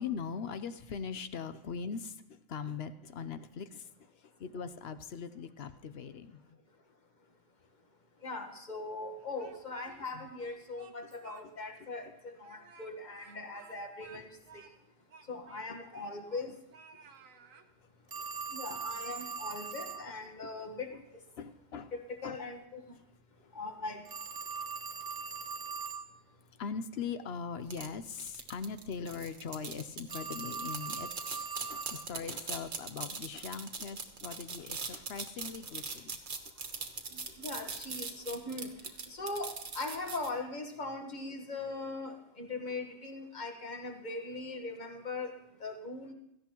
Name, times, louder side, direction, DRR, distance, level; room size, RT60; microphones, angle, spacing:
voice 1, 0.0-3.9 4.4-6.6 10.1-10.3 15.7-16.0 20.4-20.5 20.9-21.0 21.4-21.9 22.2-22.4 26.6-36.2, left 6 dB, 60° left, 11 dB, 0.8 m, -41 dB
voice 2, 8.2-12.0 12.8-14.3 15.3-16.5 18.5-20.9 22.2-22.8 23.5-24.0 37.4-38.7 39.2-39.5 39.7-45.3 45.6-46.1, left 3 dB, 35° left, 4 dB, 1.5 m, -40 dB
Speech, 9.2-10.1 10.4-11.4 11.8-11.9 12.4-16.5 16.7-17.7, right 5 dB, 90° right, 1.4 m, -56 dB
Telephone, 18.1-20.1 24.1-26.1 30.1-32.1, right 6 dB, 40° right, 0.3 m, -40 dB
sound 1, 27.7-40.3, right 4 dB, 55° right, 1.5 m, -40 dB
17.0 x 14.0 x 3.0 m, 0.82 s
omnidirectional pair, 1.3 m